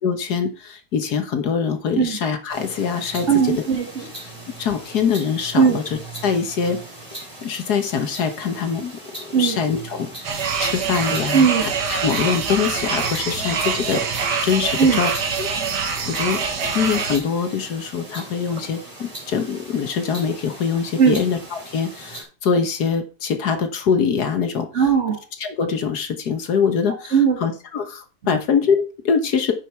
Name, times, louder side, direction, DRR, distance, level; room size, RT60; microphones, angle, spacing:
voice 1, 0.0-3.3 4.2-4.3 4.6-6.8 7.1-15.1 15.4-16.4 16.7-24.7 25.4-29.5, left 6 dB, 65° left, 7 dB, 1.6 m, -24 dB
sound 1, 2.5-22.2, right 2 dB, 15° right, 3.7 m, -39 dB
voice 2, 3.3-4.1 5.5-5.8 9.3-9.6 11.3-11.7 14.8-15.0 21.0-21.2 24.7-25.2 27.1-27.4, right 6 dB, 45° right, 4 dB, 1.7 m, -17 dB
sound 2, 10.2-17.2, right 5 dB, 70° right, 1.9 m, -25 dB
9.2 x 5.6 x 4.5 m, 0.34 s
omnidirectional pair, 1.9 m